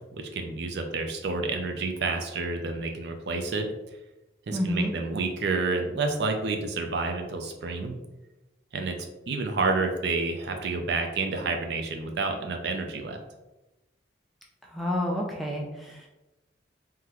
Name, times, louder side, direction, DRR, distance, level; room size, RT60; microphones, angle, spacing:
voice 1, 0.1-3.7 4.5-8.0 8.7-9.0 9.3-13.2, right 3 dB, 65° right, 4 dB, 0.4 m, -29 dB
voice 2, 4.5-4.9 14.7-16.1, left 1 dB, ahead, -2 dB, 0.4 m, -29 dB
3.7 x 2.1 x 2.9 m, 1.0 s
head